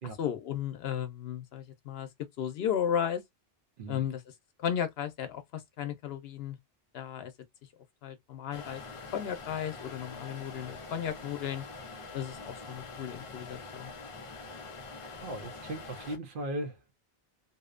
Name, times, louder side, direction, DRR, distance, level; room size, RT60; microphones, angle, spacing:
voice 1, 0.2-2.1 2.4-3.2 3.9-4.2 4.6-6.6 6.9-7.3 8.0-8.8 9.1-11.6 12.1-13.9, left 9 dB, 80° left, 0.8 m, -34 dB
sound 1, 8.5-16.2, left 3 dB, 45° left, 0.5 m, -45 dB
voice 2, 15.2-16.9, right 1 dB, 60° right, 0.8 m, -38 dB
2.6 x 2.1 x 2.3 m
omnidirectional pair, 1.0 m